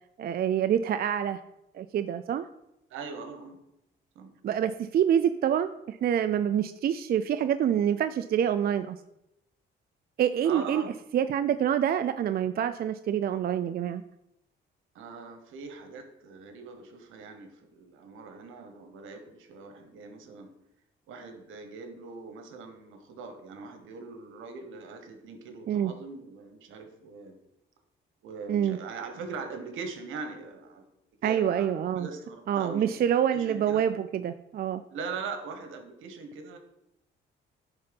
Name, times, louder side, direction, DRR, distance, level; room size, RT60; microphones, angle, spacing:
voice 1, 0.2-1.4 1.7-2.5 4.4-9.0 10.2-10.8 11.1-14.0 25.7-25.9 28.5-28.8 31.2-32.1 32.5-34.8, right 9 dB, 50° right, 10 dB, 0.4 m, -26 dB
voice 2, 2.9-3.6 4.1-4.3 10.4-10.9 14.9-20.5 21.1-27.4 28.2-30.8 31.2-33.0 33.3-33.8 34.9-36.6, right 4 dB, 85° right, 6 dB, 1.4 m, -41 dB
9.8 x 4.0 x 5.3 m, 0.84 s
cardioid pair, 90°, 20 cm